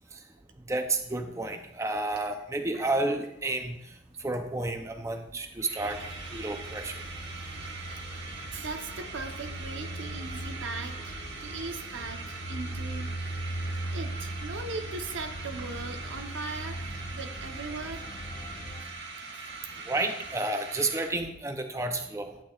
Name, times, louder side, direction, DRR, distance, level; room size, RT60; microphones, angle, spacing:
voice 1, 0.7-3.8 4.2-6.0 6.3-6.9 19.9-22.3, right 2 dB, 15° right, 6 dB, 0.5 m, -31 dB
sound 1, 1.4-1.5 1.8-3.5 3.8-3.9 4.1-4.4 4.6-4.7 5.1-5.2 5.4-21.1, right 4 dB, 65° right, 1.4 m, -42 dB
sound 2, 5.8-18.8, right 1 dB, 45° left, 1.2 m, -39 dB
voice 2, 8.5-13.1 13.9-18.1 18.9-19.0 19.3-19.6 19.8-19.9, right 3 dB, 90° right, 5 dB, 0.9 m, -39 dB
12.0 x 8.7 x 2.4 m, 0.76 s
head